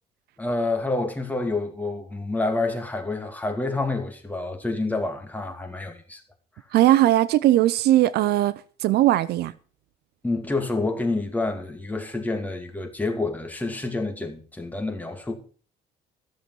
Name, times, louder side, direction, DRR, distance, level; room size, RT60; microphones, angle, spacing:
voice 1, 0.4-6.2 10.2-15.3, left 2 dB, 10° left, 2.5 m, -28 dB
voice 2, 6.7-8.5 8.8-9.5, right 14 dB, 70° right, 0.7 m, -19 dB
14.5 x 6.9 x 6.1 m
cardioid pair, 110°, 17 cm